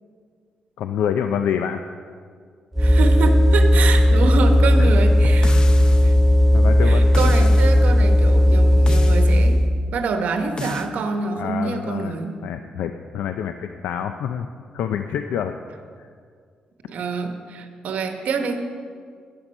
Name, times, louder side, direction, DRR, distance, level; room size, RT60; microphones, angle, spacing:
voice 1, 0.8-1.8 4.8-4.9 6.5-7.3 11.4-12.1 12.4-14.5 14.7-15.5 16.0-16.1, left 8 dB, 85° left, 7 dB, 0.4 m, -27 dB
sound 1, 2.8-9.6, left 1 dB, 10° right, 0.4 m, -15 dB
voice 2, 2.8-5.6 6.0-6.1 6.8-9.6 9.9-12.3 16.9-18.6, right 4 dB, 70° right, 6 dB, 1.1 m, -26 dB
sound 2, 5.4-6.2 7.1-7.8 8.9-9.4 10.6-10.9, left 3 dB, 30° left, 0.7 m, -33 dB
11.0 x 8.7 x 5.4 m, 2.1 s
cardioid pair, 110°, 3 cm